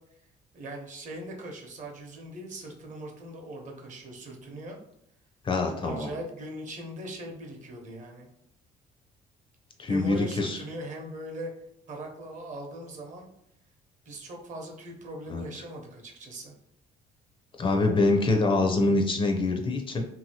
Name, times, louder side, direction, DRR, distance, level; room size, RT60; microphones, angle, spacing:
voice 1, 0.5-4.8 5.8-8.3 9.9-11.5 11.9-13.3 14.1-16.5, right 1 dB, 45° right, 2 dB, 0.7 m, -40 dB
voice 2, 5.4-6.1 9.8-10.6 15.3-15.4 17.6-20.1, left 2 dB, 30° left, 3 dB, 0.5 m, -25 dB
2.8 x 2.7 x 2.8 m, 0.77 s
cardioid pair, 110°, 17 cm